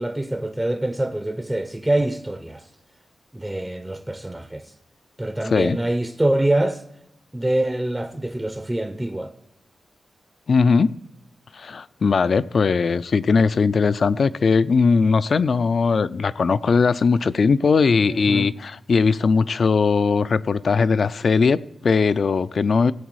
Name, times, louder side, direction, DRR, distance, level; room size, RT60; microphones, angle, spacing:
voice 1, 0.0-2.7 3.3-4.7 5.2-6.8 7.3-9.3 18.1-18.5, right 1 dB, 10° right, 0.5 m, -25 dB
voice 2, 5.5-5.8 10.5-10.9 11.5-22.9, left 5 dB, 50° left, 0.3 m, -19 dB
17.0 x 8.1 x 4.7 m
wide cardioid pair, 170°, 0 cm